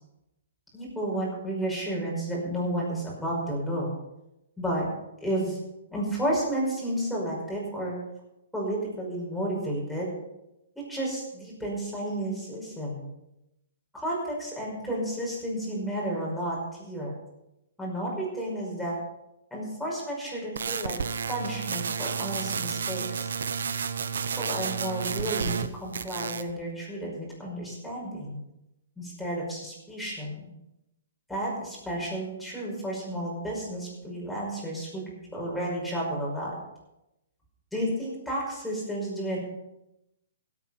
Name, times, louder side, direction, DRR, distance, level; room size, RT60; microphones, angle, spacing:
voice 1, 0.7-3.9 4.6-4.9 5.2-5.6 5.9-8.0 8.5-10.1 10.8-13.1 13.9-17.1 17.8-18.9 19.5-21.0 21.3-23.3 24.1-28.4 29.0-30.4 31.3-35.0 35.3-36.5 37.7-39.4, right 1 dB, ahead, -4 dB, 5.4 m, -32 dB
sound 1, 20.6-25.7 25.9-26.5, right 6 dB, 80° right, 1.0 m, -31 dB
17.0 x 8.7 x 5.9 m, 0.89 s
hypercardioid pair, 155°, 0 cm